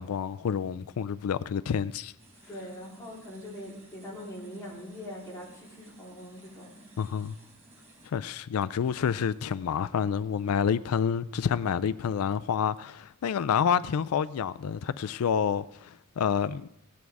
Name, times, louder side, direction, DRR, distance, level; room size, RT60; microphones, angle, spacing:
voice 1, 0.0-2.1 7.0-7.3 8.0-16.7, left 7 dB, 90° left, 0.4 m, -28 dB
sound 1, 2.2-8.1, right 1 dB, 30° right, 3.9 m, -56 dB
voice 2, 2.5-6.8, equal, 15° left, 4.1 m, -42 dB
16.5 x 9.3 x 4.7 m
head